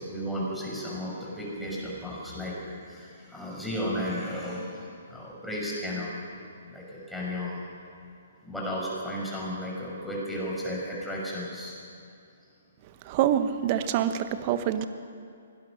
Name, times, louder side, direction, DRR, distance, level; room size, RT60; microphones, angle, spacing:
voice 1, 0.0-6.2 6.7-7.5 8.4-11.7, equal, ahead, -5 dB, 6.0 m, -34 dB
voice 2, 13.0-14.9, right 10 dB, 35° right, 10 dB, 1.2 m, -26 dB
23.5 x 18.5 x 6.5 m, 2.4 s
figure-of-eight pair, 125°, 0 cm